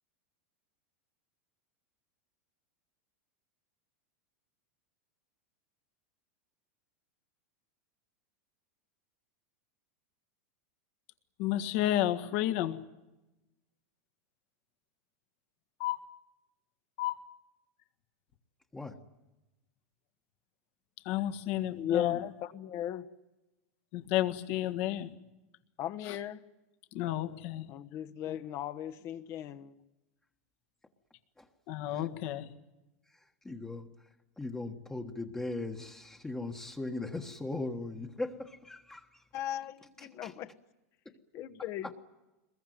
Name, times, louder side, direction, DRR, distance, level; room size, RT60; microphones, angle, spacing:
voice 1, 11.4-12.8 15.8-16.0 17.0-17.2 21.1-22.2 23.9-25.1 26.1-26.2 26.9-27.7 28.3-28.4 31.7-32.5, left 13 dB, 55° left, 8 dB, 1.7 m, -31 dB
voice 2, 21.7-23.1 25.8-26.4 27.7-29.7 39.3-40.5 41.3-41.9, left 11 dB, 40° left, 10 dB, 1.2 m, -36 dB
voice 3, 33.1-34.1 34.4-39.3 40.0-40.3 41.0-41.1 41.8-41.9, left 2 dB, 10° left, 2 dB, 1.4 m, -39 dB
23.0 x 21.5 x 9.2 m, 1.0 s
supercardioid pair, 140°, 8 cm